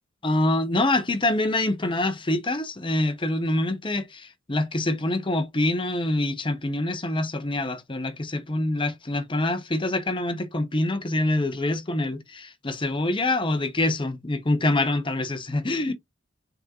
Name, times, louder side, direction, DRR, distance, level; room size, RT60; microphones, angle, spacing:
voice 1, 0.2-15.9, left 2 dB, 25° left, 0.9 m, -25 dB
5.7 x 3.7 x 2.5 m
head